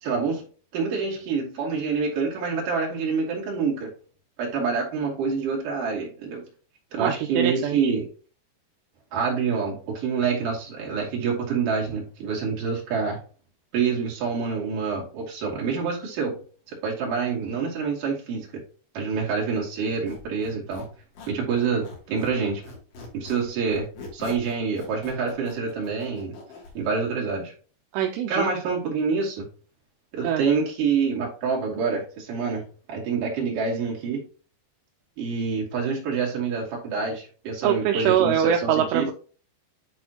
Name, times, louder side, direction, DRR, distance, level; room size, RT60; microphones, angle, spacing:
voice 1, 0.0-0.4 0.7-3.9 4.4-6.4 6.9-8.1 9.1-13.2 13.7-16.4 16.7-18.6 18.9-20.9 21.3-22.6 23.1-26.4 26.7-27.5 28.3-29.5 30.1-34.2 35.2-39.1, right 5 dB, 55° right, -3 dB, 3.9 m, -27 dB
voice 2, 7.0-7.8 27.9-28.5 30.2-30.4 37.6-39.1, right 9 dB, 85° right, 3 dB, 2.8 m, -23 dB
Squeak, 19.9-22.4 22.6-26.7, left 3 dB, 90° left, 4.9 m, -42 dB
10.5 x 4.1 x 2.9 m, 0.39 s
omnidirectional pair, 4.9 m